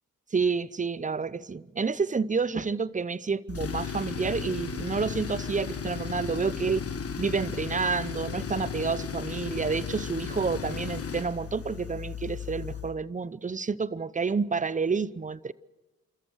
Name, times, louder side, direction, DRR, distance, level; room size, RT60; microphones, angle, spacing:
voice 1, 0.3-6.8 7.2-15.5, right 5 dB, 25° right, 0.7 m, -29 dB
Tools, 3.5-13.0, left 6 dB, 45° left, 1.6 m, -35 dB
29.5 x 14.0 x 6.4 m
supercardioid pair, 50°, 31 cm